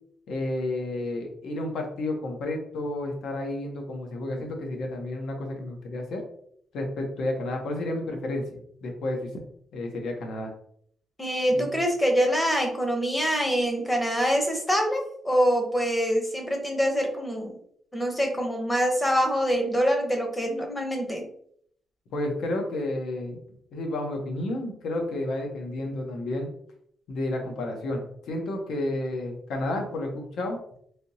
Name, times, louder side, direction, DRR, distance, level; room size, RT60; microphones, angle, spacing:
voice 1, 0.3-6.2 6.7-9.3 9.7-10.5 11.5-11.7 22.1-23.4 23.7-26.5 27.1-30.6, left 1 dB, 80° left, 2 dB, 0.9 m, -31 dB
voice 2, 11.2-17.6 17.9-21.3, equal, 15° left, 2 dB, 0.7 m, -25 dB
3.3 x 2.8 x 2.7 m, 0.66 s
cardioid pair, 130°, 0 cm